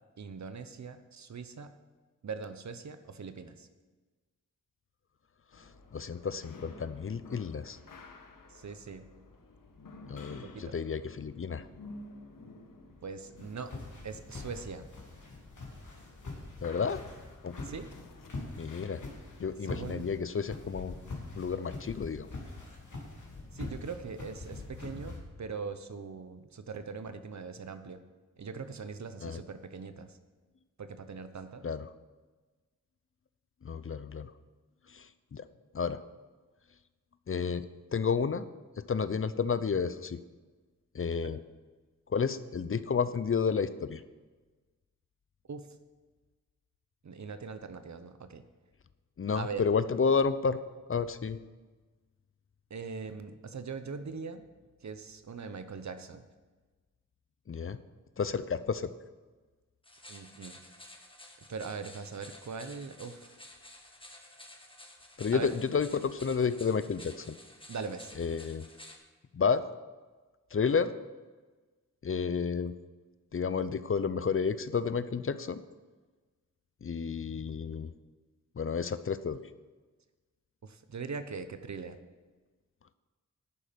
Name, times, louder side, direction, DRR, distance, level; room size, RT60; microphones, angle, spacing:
voice 1, 0.2-1.7 2.2-3.7 8.5-9.1 10.3-10.7 13.0-13.7 14.0-14.9 17.6-17.9 19.6-20.1 23.5-28.0 28.4-30.2 30.8-31.6 41.2-41.3 45.5-45.7 47.0-48.4 49.4-49.7 52.7-54.4 54.8-56.3 60.1-60.6 61.5-63.3 65.3-65.5 67.7-68.1 80.6-82.0, right 5 dB, 60° right, 10 dB, 0.9 m, -41 dB
sound 1, 5.5-19.5, left 3 dB, 85° left, 1.3 m, -52 dB
voice 2, 5.9-7.8 10.1-11.7 16.6-17.0 17.4-17.6 18.6-19.0 19.4-20.9 21.3-22.3 29.2-29.4 31.6-31.9 33.6-34.3 34.9-35.5 35.7-36.0 37.3-37.7 37.9-38.4 38.8-40.2 40.9-41.4 42.1-44.0 49.2-50.6 50.9-51.4 57.5-57.8 58.2-58.9 65.2-67.3 68.2-68.7 69.3-69.6 70.5-70.9 72.0-72.7 73.3-75.6 76.8-77.9 78.6-79.4, left 5 dB, 40° left, 14 dB, 0.5 m, -31 dB
sound 2, 13.4-25.2, left 3 dB, 65° left, 2.6 m, -44 dB
sound 3, 59.8-69.0, left 1 dB, 15° left, 1.4 m, -52 dB
11.0 x 8.7 x 5.2 m, 1.3 s
wide cardioid pair, 80°, 32 cm